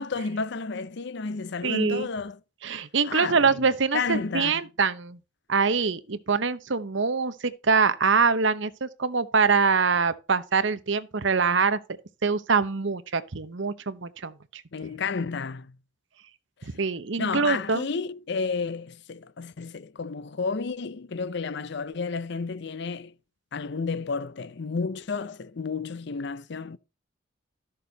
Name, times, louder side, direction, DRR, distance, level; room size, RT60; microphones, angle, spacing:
voice 1, 0.0-2.4 3.0-3.6 3.9-4.6 14.7-15.8 16.6-16.7 17.2-23.1 23.5-26.8, left 4 dB, 55° left, 0.6 m, -31 dB
voice 2, 1.6-2.1 2.6-5.2 5.5-11.8 12.2-14.6 16.7-17.9, right 5 dB, 65° right, 0.9 m, -24 dB
13.0 x 6.8 x 4.0 m
head